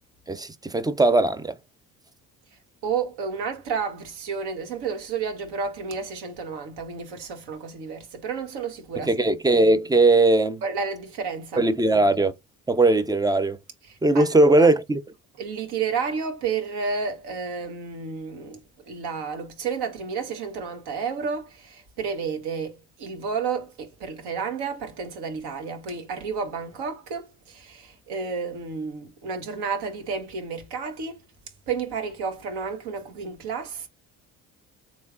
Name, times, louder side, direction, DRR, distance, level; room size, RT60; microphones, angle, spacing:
voice 1, 0.3-1.5 9.1-10.6 11.6-12.3 12.7-13.6 14.0-15.0, right 2 dB, 10° right, 0.4 m, -19 dB
voice 2, 2.8-9.4 10.6-11.7 13.9-14.7 15.4-31.3 31.7-33.9, right 5 dB, 65° right, 1.1 m, -31 dB
3.6 x 3.1 x 2.4 m
hypercardioid pair, 55°, 42 cm